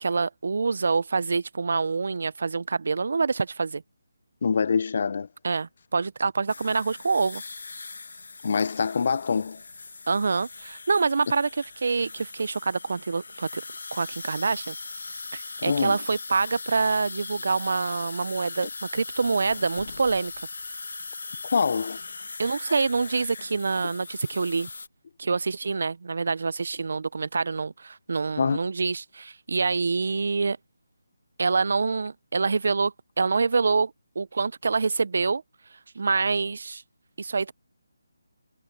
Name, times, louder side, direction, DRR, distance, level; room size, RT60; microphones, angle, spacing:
voice 1, 0.0-3.8 5.4-7.4 10.1-13.6 13.9-14.8 15.3-20.3 22.4-24.7 25.2-30.6 31.4-33.9 34.2-35.4 36.0-36.8 37.2-37.5, right 4 dB, 60° right, 0.5 m, -26 dB
voice 2, 4.4-5.3 8.4-9.6 15.6-16.0 21.4-22.0 28.4-28.6, left 5 dB, 50° left, 0.3 m, -25 dB
sound 1, 6.5-24.9, left 3 dB, 70° left, 1.4 m, -39 dB
figure-of-eight pair, 160°, 0 cm